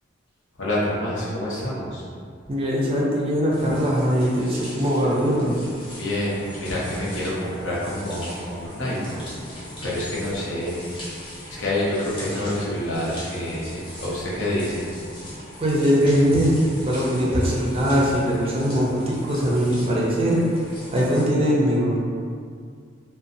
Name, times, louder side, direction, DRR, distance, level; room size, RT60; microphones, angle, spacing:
voice 1, 0.6-2.0 6.0-9.2 9.8-11.0 11.5-14.9, left 1 dB, 75° left, -7 dB, 0.7 m, -27 dB
voice 2, 2.5-5.6 15.6-16.6 16.8-20.4 20.9-22.0, equal, 30° right, -4 dB, 0.4 m, -21 dB
sound 1, 3.5-21.3, left 1 dB, 25° left, 0.6 m, -39 dB
2.6 x 2.2 x 2.6 m, 2.2 s
head